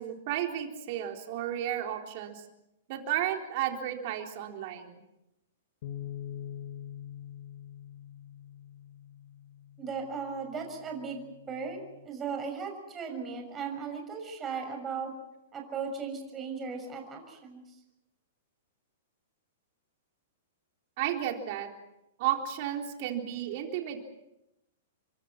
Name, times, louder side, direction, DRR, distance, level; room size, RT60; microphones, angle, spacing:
voice 1, 0.0-2.4 2.9-4.9 21.0-21.7 22.2-24.0, right 11 dB, 50° right, 3 dB, 3.9 m, -33 dB
sound 1, 5.8-12.1, left 10 dB, 55° left, 2.1 m, -45 dB
voice 2, 9.8-11.2 11.5-11.8 12.0-15.1 15.5-17.8, right 5 dB, 20° right, 3 dB, 6.5 m, -37 dB
30.0 x 24.0 x 6.0 m, 0.90 s
hypercardioid pair, 115°, 0 cm